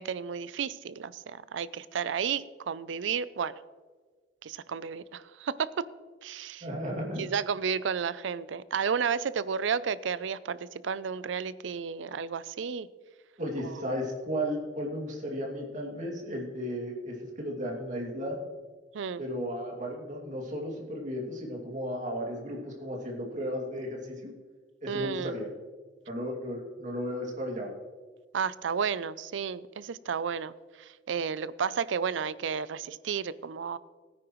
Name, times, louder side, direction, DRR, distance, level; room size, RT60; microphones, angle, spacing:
voice 1, 0.0-3.5 4.4-5.9 6.2-6.7 7.2-12.9 18.9-19.2 24.9-25.3 28.3-30.5 30.8-33.8, right 6 dB, 75° right, 17 dB, 0.4 m, -32 dB
voice 2, 6.6-7.3 13.4-18.4 19.2-24.3 24.8-25.5 26.1-27.7, equal, 40° right, -1 dB, 2.4 m, -34 dB
17.0 x 9.7 x 3.1 m, 1.5 s
head